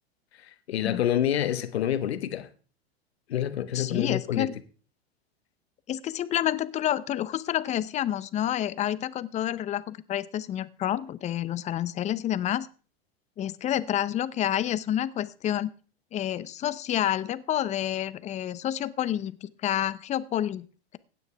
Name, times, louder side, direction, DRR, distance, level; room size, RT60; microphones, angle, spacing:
voice 1, 0.4-2.5 3.3-4.5, left 10 dB, 80° left, 1.2 m, -27 dB
voice 2, 3.7-4.5 5.9-12.7 13.4-15.7 16.1-20.7, left 11 dB, 20° left, 0.6 m, -29 dB
15.5 x 9.2 x 3.3 m
hypercardioid pair, 115°, 31 cm